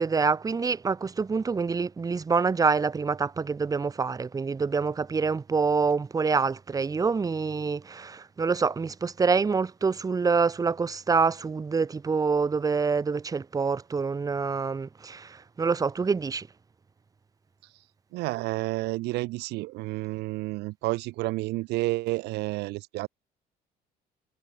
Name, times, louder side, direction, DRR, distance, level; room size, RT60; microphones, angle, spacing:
voice 1, 0.0-16.5, right 5 dB, 20° right, 0.8 m, -26 dB
voice 2, 18.1-23.1, right 21 dB, 85° right, 0.5 m, -30 dB
cardioid pair, 110°, 17 cm